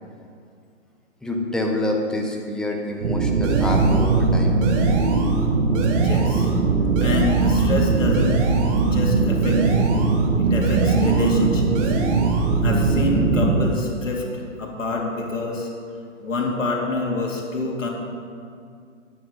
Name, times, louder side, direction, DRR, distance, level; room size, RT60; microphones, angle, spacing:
voice 1, 1.2-4.6, left 1 dB, ahead, 0 dB, 0.7 m, -27 dB
sound 1, 3.0-13.6, right 4 dB, 70° right, 1.4 m, -20 dB
sound 2, 3.4-4.3 4.6-5.5 5.7-6.6 6.9-7.8 8.1-9.0 9.4-10.3 10.6-11.5 11.7-12.6, right 4 dB, 25° right, 1.2 m, -33 dB
voice 2, 6.0-6.5 7.0-8.5 8.8-9.9 10.4-12.0 12.6-15.7 16.2-17.9, left 3 dB, 80° left, -1 dB, 2.7 m, -27 dB
9.5 x 8.9 x 5.4 m, 2.3 s
hypercardioid pair, 130°, 38 cm